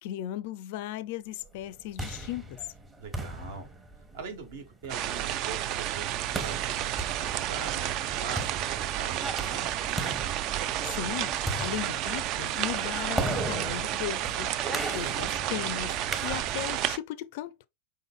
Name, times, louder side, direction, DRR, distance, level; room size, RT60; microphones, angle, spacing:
voice 1, 0.0-2.6 10.8-17.6, left 12 dB, 50° left, 0.4 m, -37 dB
sound 1, 1.6-16.8, right 2 dB, 15° right, 0.9 m, -38 dB
voice 2, 3.0-3.7 4.1-9.8, right 4 dB, 55° right, 1.3 m, -43 dB
sound 2, 4.9-17.0, right 12 dB, 40° right, 0.4 m, -31 dB
5.1 x 3.8 x 2.2 m
figure-of-eight pair, 90°, 0 cm